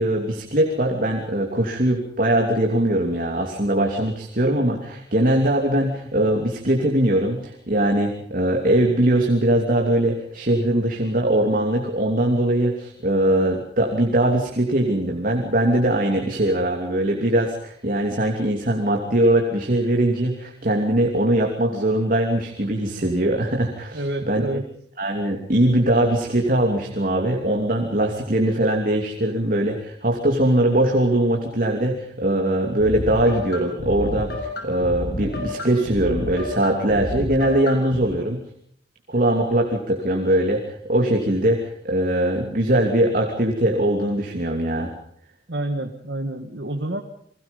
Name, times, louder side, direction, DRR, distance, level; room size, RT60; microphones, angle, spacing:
voice 1, 0.0-24.6 25.0-38.4 39.1-44.9, right 1 dB, 50° right, 2 dB, 2.9 m, -21 dB
voice 2, 23.9-24.6 45.5-47.0, right 1 dB, 70° right, 5 dB, 2.0 m, -28 dB
sound 1, 32.8-38.0, left 1 dB, 65° left, 7.0 m, -30 dB
29.5 x 22.0 x 5.4 m, 0.63 s
head